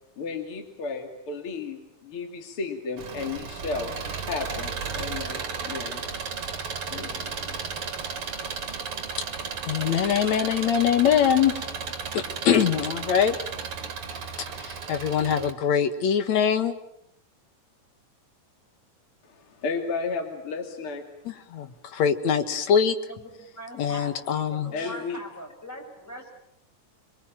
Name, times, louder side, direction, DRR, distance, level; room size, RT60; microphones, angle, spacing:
voice 1, 0.2-3.9 4.3-6.0 6.9-7.6 19.2-21.0 24.7-25.2, left 4 dB, 45° left, 4 dB, 3.3 m, -33 dB
Engine, 3.0-15.5, right 5 dB, 45° right, 3.1 m, -34 dB
voice 2, 9.6-11.7 12.1-13.4 14.6-16.7 21.3-23.0 23.8-24.7, left 8 dB, 60° left, 9 dB, 2.8 m, -23 dB
voice 3, 23.1-24.1 24.5-26.3, right 1 dB, 5° left, 2 dB, 6.3 m, -41 dB
26.5 x 23.5 x 8.9 m, 0.78 s
omnidirectional pair, 3.7 m